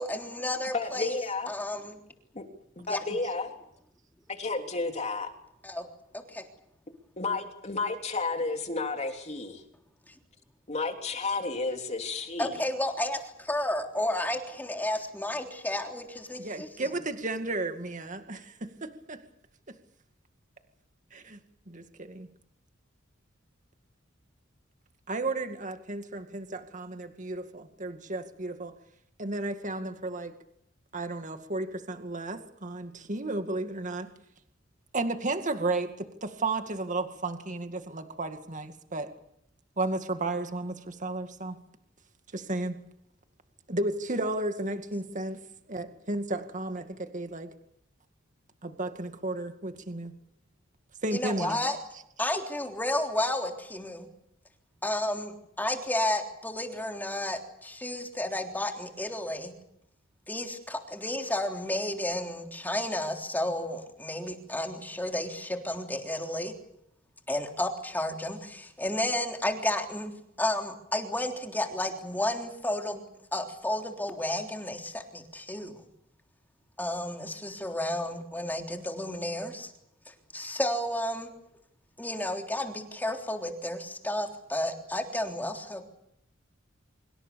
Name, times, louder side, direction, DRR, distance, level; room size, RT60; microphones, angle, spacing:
voice 1, 0.0-1.2 1.5-2.0 2.9-3.0 5.6-5.9 6.1-6.4 12.4-16.9 51.1-51.8 52.2-54.1 54.8-59.5 60.3-66.5 67.3-73.0 73.3-75.9 76.8-79.7 80.1-81.3 82.0-85.8, left 1 dB, 10° left, 3 dB, 3.5 m, -32 dB
voice 2, 0.7-1.5 2.3-2.4 2.8-3.5 4.3-5.3 7.2-9.6 10.7-12.6, left 3 dB, 35° left, 4 dB, 3.3 m, -32 dB
voice 3, 16.4-19.2 21.1-21.4 21.7-22.3 25.1-28.7 29.2-30.3 30.9-34.1 34.9-39.1 39.8-41.6 42.3-42.8 43.7-45.4 45.7-47.5 48.6-50.1 51.0-51.6, right 2 dB, 40° right, 7 dB, 2.2 m, -33 dB
25.5 x 24.0 x 7.0 m, 0.76 s
head